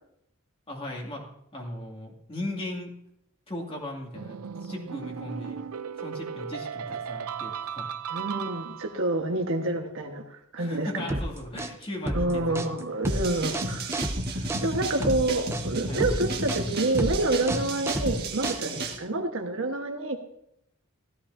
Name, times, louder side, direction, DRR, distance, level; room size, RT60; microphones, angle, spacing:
voice 1, 0.7-1.2 1.5-2.9 3.5-5.6 6.0-7.9 10.6-12.7 14.3-14.7 15.9-16.0 17.4-17.6 18.7-18.9, left 1 dB, 25° left, 0 dB, 2.4 m, -37 dB
sound 1, 4.1-9.1, right 7 dB, 75° right, 0.6 m, -36 dB
voice 2, 8.1-11.2 12.1-14.0 14.6-20.2, right 2 dB, 60° right, 3 dB, 1.4 m, -28 dB
sound 2, 11.1-18.9, right 1 dB, 10° right, 0.7 m, -31 dB
sound 3, 13.1-19.0, right 2 dB, 45° right, 1.7 m, -32 dB
16.0 x 13.0 x 2.7 m, 0.77 s
head